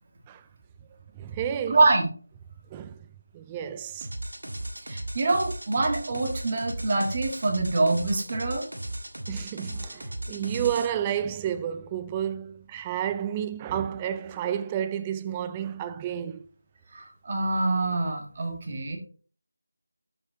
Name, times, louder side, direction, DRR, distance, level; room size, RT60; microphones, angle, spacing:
voice 1, 1.1-1.8 2.7-2.9 3.3-4.1 9.3-16.4, right 9 dB, 15° right, 0.3 m, -31 dB
voice 2, 1.7-2.1 4.9-8.7 16.9-19.0, right 2 dB, 35° right, 1.7 m, -25 dB
sound 1, 4.0-10.9, right 1 dB, 80° right, 1.6 m, -36 dB
11.5 x 5.8 x 2.9 m
figure-of-eight pair, 165°, 0 cm